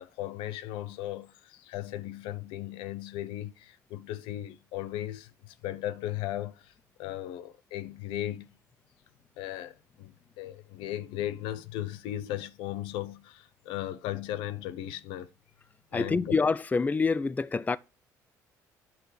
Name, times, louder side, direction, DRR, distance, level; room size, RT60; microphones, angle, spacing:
voice 1, 0.0-6.7 7.0-8.5 9.4-15.3 15.9-16.4, left 13 dB, 70° left, 0.6 m, -37 dB
voice 2, 15.9-17.8, left 4 dB, 15° left, 0.4 m, -26 dB
9.4 x 3.3 x 6.3 m
figure-of-eight pair, 50°, 9 cm